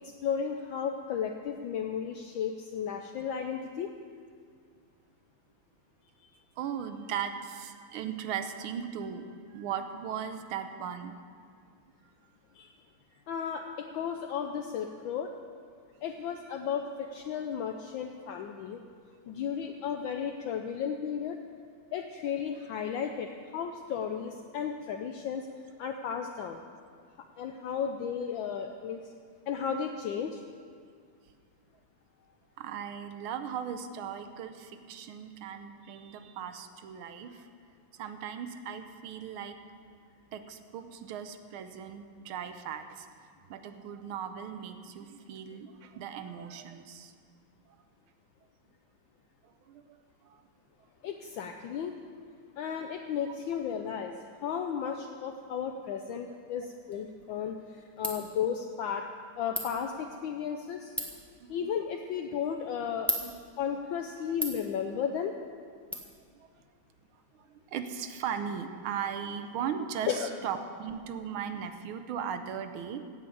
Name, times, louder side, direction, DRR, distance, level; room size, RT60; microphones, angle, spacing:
voice 1, 0.2-3.9 12.5-12.7 13.3-15.3 16.0-18.8 19.3-21.4 21.9-25.5 25.8-26.6 27.4-29.0 29.5-30.4 51.0-51.9 52.6-54.1 54.4-59.0 59.4-60.9 61.5-63.1 63.6-65.3 70.0-70.3, left 7 dB, 70° left, 4 dB, 1.3 m, -34 dB
voice 2, 6.6-11.2 32.6-37.5 37.9-39.6 40.3-43.1 43.5-47.1 49.4-50.0 50.2-50.4 61.4-61.6 63.2-63.3 65.9-66.0 66.3-66.5 67.3-73.0, right 8 dB, 75° right, 8 dB, 1.5 m, -38 dB
Ratchet pawl, 56.9-65.9, equal, ahead, 0.9 m, -41 dB
15.5 x 5.6 x 8.5 m, 2.1 s
omnidirectional pair, 2.4 m